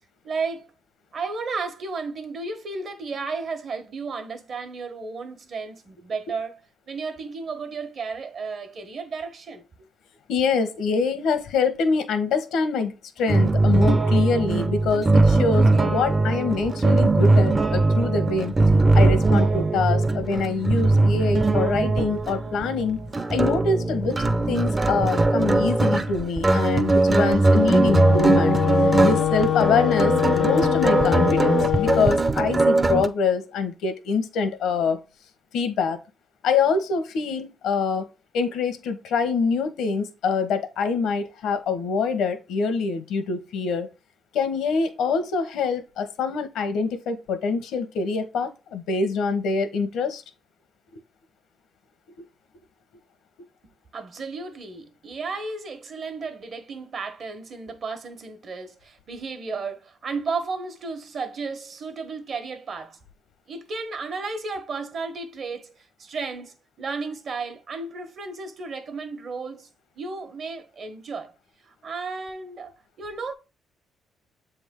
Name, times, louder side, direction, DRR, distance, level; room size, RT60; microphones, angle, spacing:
voice 1, 0.2-0.7 1.1-6.6 6.9-9.6 53.9-63.0 63.5-69.7 70.0-71.3 71.7-72.7 73.0-73.3, right 4 dB, 55° right, 1.2 m, -33 dB
voice 2, 10.3-18.5 18.9-23.0 23.3-28.6 28.8-35.0 35.5-36.0 36.4-38.1 38.3-43.9 44.3-50.2, left 5 dB, 85° left, 1.1 m, -25 dB
sound 1, 13.3-33.1, right 2 dB, 25° right, 0.5 m, -20 dB
Wind instrument woodwind instrument, 27.7-32.2, left 11 dB, 55° left, 0.4 m, -23 dB
7.4 x 3.5 x 3.7 m
cardioid pair, 90°, 0 cm